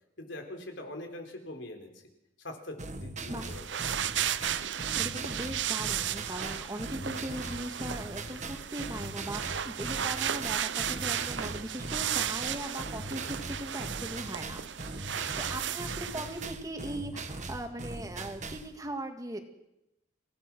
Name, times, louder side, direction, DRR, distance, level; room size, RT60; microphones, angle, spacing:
voice 1, 0.2-1.9 2.4-3.6, left 1 dB, 75° left, 5 dB, 4.1 m, -42 dB
sound 1, 2.8-18.7, right 2 dB, 40° right, 1.7 m, -40 dB
sound 2, 3.4-16.5, right 9 dB, 70° right, 0.8 m, -34 dB
voice 2, 4.9-14.7 15.4-19.4, right 1 dB, 20° right, 5 dB, 2.0 m, -39 dB
26.5 x 17.5 x 6.2 m, 0.87 s
head